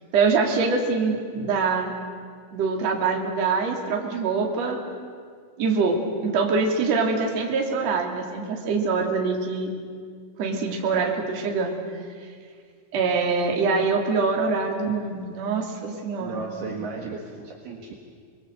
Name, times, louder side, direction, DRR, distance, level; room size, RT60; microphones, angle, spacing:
voice 1, 0.1-1.9 2.5-4.8 5.6-9.7 10.4-11.7 12.9-16.5, right 4 dB, 40° right, 0 dB, 3.1 m, -24 dB
voice 2, 16.2-18.0, right 4 dB, 60° right, 0 dB, 3.3 m, -34 dB
28.5 x 22.0 x 8.0 m, 2.1 s
omnidirectional pair, 6.0 m